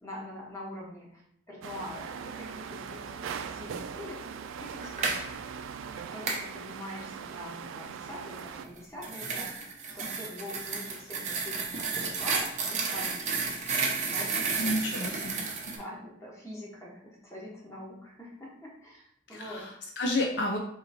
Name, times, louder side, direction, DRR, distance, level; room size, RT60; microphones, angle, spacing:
voice 1, 0.0-4.3 4.6-5.4 5.9-9.7 9.9-13.3 14.1-15.0 15.7-19.7, left 1 dB, 15° left, -4 dB, 1.1 m, -44 dB
sound 1, 1.6-8.7, right 6 dB, 80° right, 0.3 m, -40 dB
sound 2, 4.8-5.2 6.3-6.5 8.6-15.8, right 4 dB, 35° right, 0.6 m, -32 dB
voice 2, 14.6-15.8 19.3-20.6, left 1 dB, 60° left, 1 dB, 0.5 m, -31 dB
3.9 x 2.9 x 4.2 m, 0.70 s
head